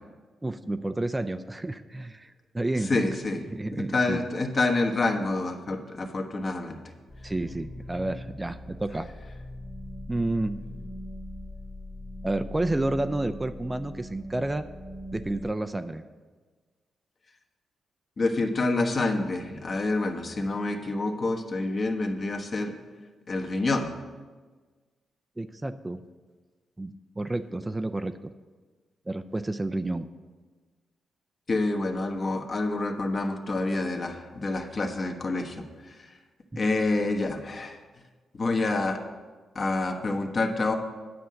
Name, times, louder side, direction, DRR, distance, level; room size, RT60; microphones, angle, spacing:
voice 1, 0.4-2.9 3.5-4.2 7.2-9.1 10.1-10.6 12.2-14.6 15.1-16.0 25.4-26.0 26.8-28.2 29.1-30.1 36.5-36.6, right 2 dB, 20° right, 10 dB, 0.5 m, -30 dB
voice 2, 2.8-3.4 3.7-6.8 18.2-22.7 23.3-23.9 31.5-36.0 36.6-37.8 38.4-39.0 39.5-40.7, left 2 dB, 50° left, 3 dB, 1.3 m, -27 dB
sound 1, 7.1-15.5, left 1 dB, 30° left, 1.7 m, -41 dB
9.5 x 5.5 x 7.7 m, 1.4 s
cardioid pair, 60°, 0 cm